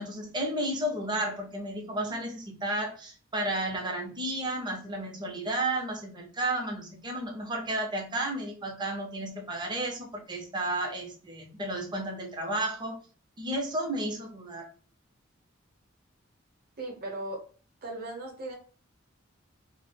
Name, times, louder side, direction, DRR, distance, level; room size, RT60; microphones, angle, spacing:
voice 1, 0.0-13.0 13.4-14.6, right 1 dB, 20° right, 2 dB, 0.5 m, -32 dB
voice 2, 16.8-17.5 17.8-18.6, right 1 dB, 50° right, 1 dB, 0.8 m, -37 dB
2.2 x 2.0 x 3.2 m, 0.39 s
head